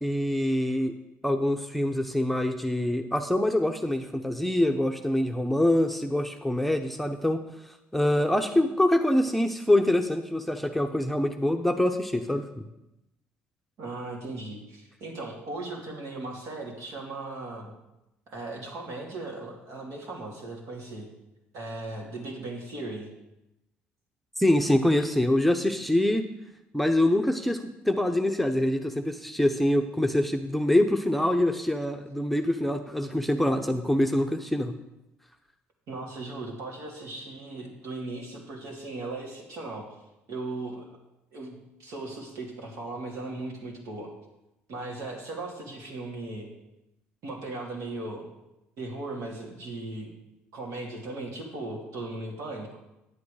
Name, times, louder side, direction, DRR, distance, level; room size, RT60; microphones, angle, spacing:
voice 1, 0.0-0.9 1.2-7.4 7.9-12.6 24.4-26.2 26.7-34.8, left 1 dB, ahead, 4 dB, 0.9 m, -25 dB
voice 2, 13.8-17.7 18.3-21.1 21.5-23.1 35.9-39.8 40.3-40.9 41.3-44.1 44.7-46.5 47.2-48.3 48.8-50.1 50.5-52.8, right 2 dB, 65° right, -1 dB, 2.7 m, -37 dB
9.7 x 8.4 x 5.0 m, 0.93 s
hypercardioid pair, 60°, 6 cm